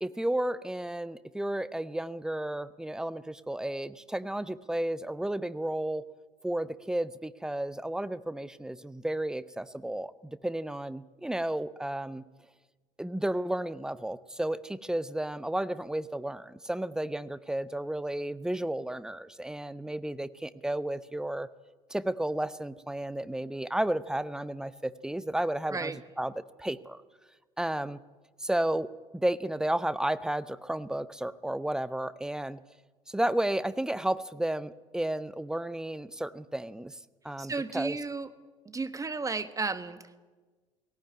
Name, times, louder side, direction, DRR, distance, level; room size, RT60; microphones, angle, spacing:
voice 1, 0.0-6.0 6.4-12.2 13.0-21.5 21.9-27.0 27.6-28.0 28.4-32.6 33.1-37.0 37.2-38.0, right 1 dB, 5° right, 16 dB, 0.8 m, -32 dB
voice 2, 37.4-38.3 38.6-40.2, right 4 dB, 20° right, 12 dB, 1.4 m, -33 dB
18.0 x 17.5 x 9.4 m, 1.3 s
figure-of-eight pair, 60°, 17 cm